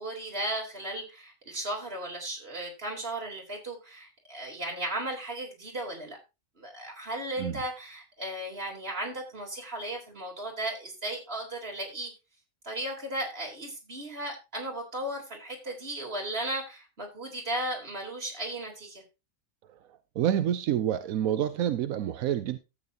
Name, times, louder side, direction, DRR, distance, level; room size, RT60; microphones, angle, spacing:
voice 1, 0.0-6.2 6.6-12.1 12.6-19.0, right 1 dB, 45° right, 3.9 m, -35 dB
voice 2, 19.7-22.6, right 10 dB, 90° right, 1.1 m, -28 dB
13.0 x 8.7 x 2.8 m
omnidirectional pair, 1.4 m